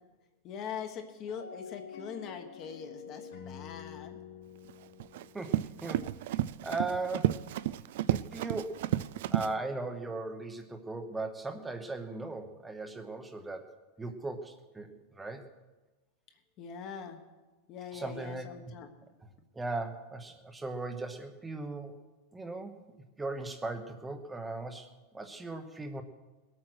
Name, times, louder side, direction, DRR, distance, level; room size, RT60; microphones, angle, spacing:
voice 1, 0.4-4.2 16.6-17.2 17.7-18.9, left 7 dB, 30° left, 6 dB, 1.3 m, -42 dB
sound 1, 1.3-6.4, left 7 dB, 60° left, 1.4 m, -48 dB
Run, 4.7-9.5, right 13 dB, 60° right, 0.4 m, -32 dB
voice 2, 6.6-7.5 8.1-8.8 9.3-13.6 14.0-15.4 17.9-18.4 19.5-22.0 22.3-22.7 23.2-24.9 25.1-26.0, right 3 dB, 5° right, 6 dB, 1.0 m, -38 dB
20.5 x 8.7 x 6.2 m, 1.2 s
supercardioid pair, 175°, 0 cm